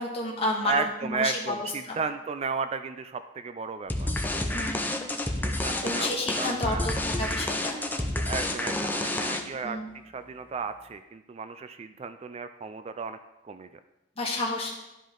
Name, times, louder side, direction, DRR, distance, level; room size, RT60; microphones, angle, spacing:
voice 1, 0.0-2.0 4.5-5.1 5.8-7.8 9.6-9.9 14.2-14.7, left 2 dB, 30° left, -1 dB, 1.6 m, -31 dB
voice 2, 0.6-4.1 5.4-6.9 8.2-9.8 10.1-13.2 13.4-13.7, right 5 dB, 35° right, 10 dB, 0.3 m, -34 dB
sound 1, 3.9-9.7, left 1 dB, 10° left, 0.6 m, -29 dB
12.0 x 5.0 x 3.8 m, 0.95 s
head